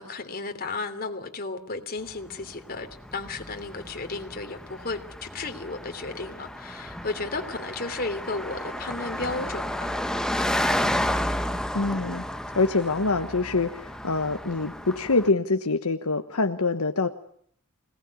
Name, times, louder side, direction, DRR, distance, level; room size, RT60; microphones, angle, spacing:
voice 1, 0.0-2.9 3.1-9.9, left 3 dB, 45° left, 3.2 m, -34 dB
Car passing by, 2.1-15.3, left 1 dB, 5° left, 1.2 m, -32 dB
voice 2, 11.7-12.2 12.5-17.1, left 3 dB, 75° left, 1.3 m, -25 dB
26.0 x 19.0 x 9.7 m
head